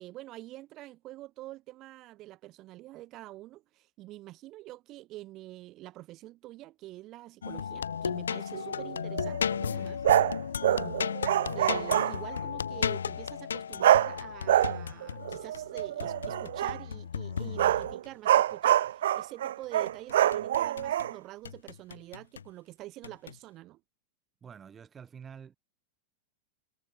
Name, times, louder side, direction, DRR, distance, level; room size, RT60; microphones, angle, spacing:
voice 1, 0.0-10.0 10.7-11.0 11.5-23.8, right 17 dB, 35° right, 7.1 m, -46 dB
sound 1, 7.4-18.1 19.9-21.1 21.4-22.5 23.0-23.4, left 7 dB, 70° left, 0.6 m, -35 dB
sound 2, 8.5-9.4 10.0-12.4 13.8-14.2 14.5-16.8 17.4-21.1, right 12 dB, 60° right, 0.4 m, -26 dB
voice 2, 24.4-25.6, right 7 dB, 20° right, 7.0 m, -48 dB
figure-of-eight pair, 90°, 0 cm